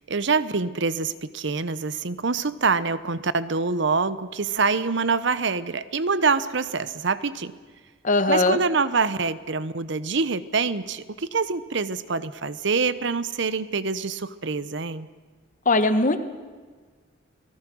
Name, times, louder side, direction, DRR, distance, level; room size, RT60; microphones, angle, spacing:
voice 1, 0.0-7.5 8.3-15.1, right 4 dB, 70° right, 15 dB, 0.9 m, -25 dB
voice 2, 8.0-8.6 15.6-16.2, left 2 dB, 45° left, 10 dB, 1.5 m, -20 dB
29.5 x 19.5 x 6.3 m, 1.5 s
head